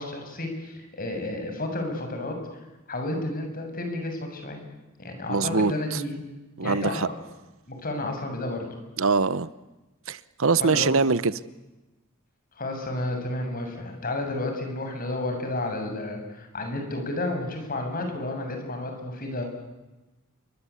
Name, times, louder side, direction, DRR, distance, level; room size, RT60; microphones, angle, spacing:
voice 1, 0.0-2.4 2.9-4.6 5.0-6.2 6.6-7.2 7.7-8.6 10.6-11.1 12.6-19.4, left 2 dB, 40° left, 5 dB, 7.2 m, -31 dB
voice 2, 5.3-6.0 6.6-7.1 9.0-9.5 10.1-11.4, right 4 dB, 65° right, 16 dB, 0.9 m, -23 dB
28.5 x 24.5 x 8.4 m, 1.1 s
head